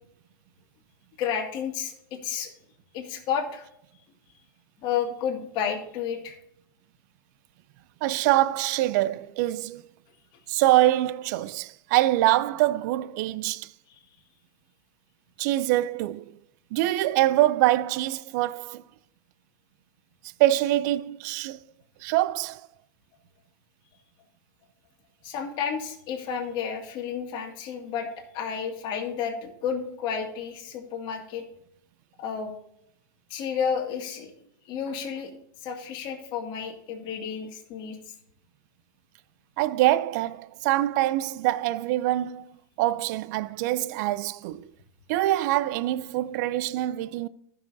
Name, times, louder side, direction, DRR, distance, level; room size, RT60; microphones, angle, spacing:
voice 1, 1.2-2.5 2.9-3.7 4.8-6.4 13.9-14.0 25.2-28.1 28.3-31.4 32.2-32.5 33.3-34.3 34.7-35.3 35.6-38.1, left 7 dB, 45° left, 2.1 m, -31 dB
voice 2, 8.0-9.8 10.5-13.7 15.4-16.3 16.7-18.8 20.4-21.6 22.0-22.6 39.6-42.5 42.8-44.7 45.1-47.3, right 15 dB, 55° right, 0.5 m, -24 dB
15.0 x 6.6 x 2.7 m
hypercardioid pair, 110°, 11 cm